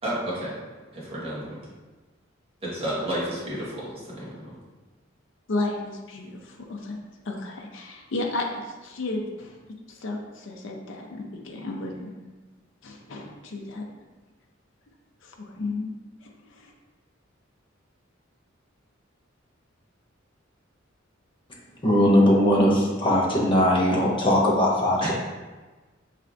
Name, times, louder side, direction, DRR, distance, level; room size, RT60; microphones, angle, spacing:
voice 1, 0.0-0.5 0.9-1.6 2.6-4.6 25.0-25.1, right 1 dB, 30° right, -7 dB, 1.3 m, -31 dB
voice 2, 5.5-7.0 7.3-8.5 8.8-9.5 9.9-12.1 12.8-13.8 15.2-15.9 16.5-16.7, left 2 dB, 70° left, 1 dB, 0.5 m, -33 dB
voice 3, 21.8-25.1, left 1 dB, 25° left, -3 dB, 0.8 m, -20 dB
4.4 x 3.3 x 2.5 m, 1.3 s
head